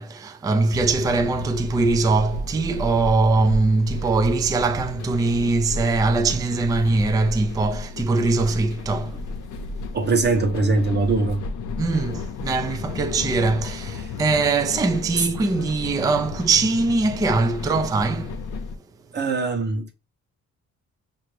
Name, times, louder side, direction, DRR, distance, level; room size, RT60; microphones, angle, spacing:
voice 1, 0.0-9.4 11.8-18.4, right 3 dB, 15° right, 0.4 m, -22 dB
sound 1, 0.7-18.8, left 3 dB, 75° left, 0.7 m, -33 dB
voice 2, 9.9-11.4 14.0-14.1 19.1-19.9, right 3 dB, 35° right, 0.9 m, -22 dB
5.6 x 2.6 x 3.1 m
cardioid pair, 90°, 30 cm